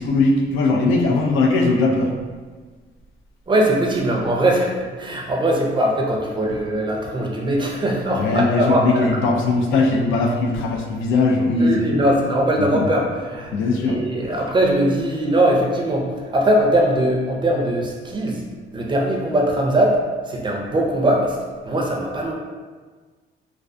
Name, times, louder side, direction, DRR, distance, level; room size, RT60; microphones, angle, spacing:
voice 1, 0.0-2.1 8.1-11.9 12.7-12.9 13.5-14.3, left 3 dB, 85° left, 1 dB, 0.4 m, -19 dB
voice 2, 3.5-9.1 11.6-13.5 13.8-18.4 18.7-21.4 21.6-22.3, right 1 dB, 25° right, 0 dB, 0.4 m, -20 dB
2.3 x 2.3 x 2.5 m, 1.4 s
cardioid pair, 90°, 20 cm